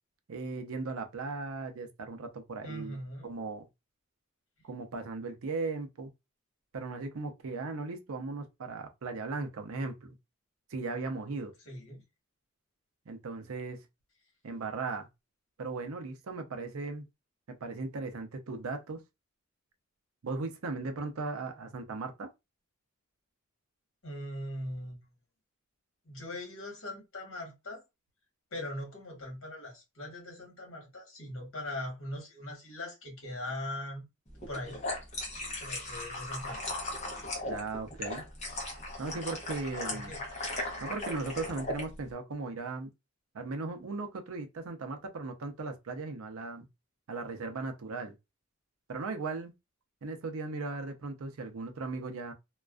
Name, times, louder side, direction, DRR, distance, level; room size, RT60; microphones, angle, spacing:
voice 1, 0.3-3.0 3.2-3.6 4.6-6.1 6.7-10.1 10.7-11.5 13.1-13.8 14.4-15.1 15.6-17.1 17.5-19.0 20.2-22.3 37.5-38.2 39.0-40.1 40.8-42.9 43.3-46.7 47.1-48.1 48.9-49.5 50.0-52.3, right 3 dB, 75° right, 0.5 m, -37 dB
voice 2, 2.6-3.3 11.7-12.0 24.0-25.0 26.0-27.8 28.5-34.0 34.5-34.9 35.6-36.6 39.9-40.2, left 1 dB, 60° left, 1.2 m, -40 dB
sound 1, 34.4-41.9, left 2 dB, 30° left, 0.6 m, -37 dB
2.4 x 2.2 x 2.3 m
head